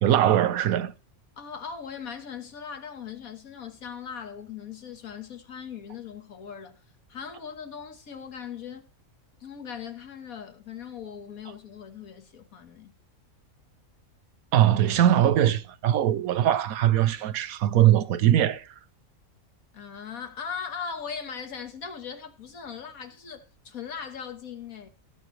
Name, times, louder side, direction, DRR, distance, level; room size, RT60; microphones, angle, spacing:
voice 1, 0.0-0.9 14.5-18.6, right 11 dB, 90° right, 1.2 m, -21 dB
voice 2, 1.4-6.8 7.1-8.9 9.4-12.9 19.7-24.9, left 7 dB, 85° left, 1.8 m, -39 dB
17.0 x 7.9 x 3.2 m
omnidirectional pair, 1.5 m